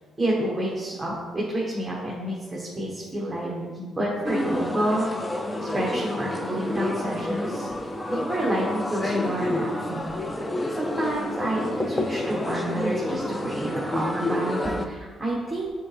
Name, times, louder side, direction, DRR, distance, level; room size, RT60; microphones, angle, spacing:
voice 1, 0.2-10.1 10.8-15.7, right 1 dB, 15° right, -5 dB, 1.2 m, -29 dB
sound 1, 4.2-14.9, left 1 dB, 15° left, 0.5 m, -29 dB
7.5 x 3.8 x 3.3 m, 1.4 s
cardioid pair, 90°, 0 cm